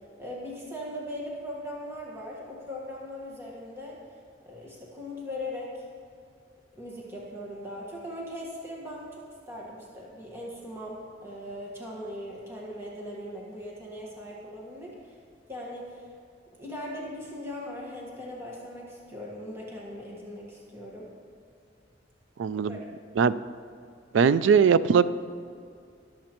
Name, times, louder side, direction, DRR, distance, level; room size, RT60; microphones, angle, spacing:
voice 1, 0.2-4.0 4.4-5.7 6.7-15.1 15.5-16.0 16.6-21.1 22.7-22.8, left 1 dB, 15° right, -4 dB, 1.4 m, -39 dB
voice 2, 22.4-22.8 23.2-23.3 24.1-25.1, right 6 dB, 85° right, 15 dB, 0.3 m, -20 dB
21.5 x 7.5 x 3.0 m, 2.3 s
head